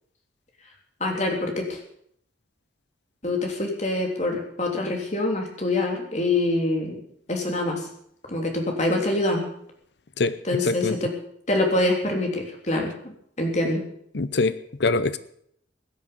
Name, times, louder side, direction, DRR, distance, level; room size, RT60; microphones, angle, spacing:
voice 1, 1.0-1.8 3.2-6.9 7.3-7.9 8.3-9.5 10.4-11.1 11.5-13.8, left 2 dB, 35° left, 1 dB, 3.3 m, -25 dB
voice 2, 10.2-10.9 14.1-15.2, left 3 dB, 60° left, 14 dB, 0.7 m, -24 dB
16.5 x 11.0 x 7.0 m, 0.69 s
head